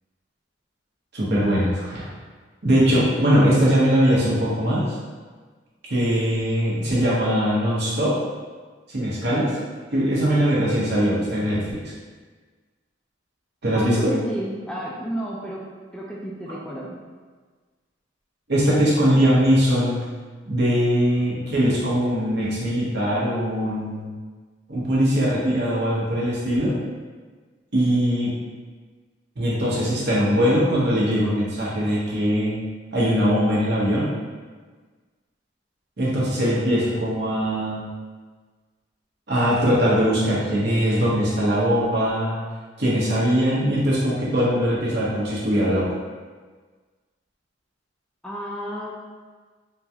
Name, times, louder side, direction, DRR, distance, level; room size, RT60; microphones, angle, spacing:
voice 1, 1.1-2.1 2.6-4.9 5.9-8.2 8.9-9.5 9.9-11.8 13.6-14.1 18.5-20.0 20.5-24.1 24.7-26.8 27.7-28.4 29.4-32.6 32.9-34.1 36.0-37.8 39.3-42.4 42.8-45.9, equal, 60° right, -7 dB, 1.0 m, -21 dB
voice 2, 13.7-15.6 15.9-16.9 48.2-49.0, equal, 5° left, -4 dB, 0.3 m, -32 dB
3.7 x 2.3 x 2.8 m, 1.4 s
head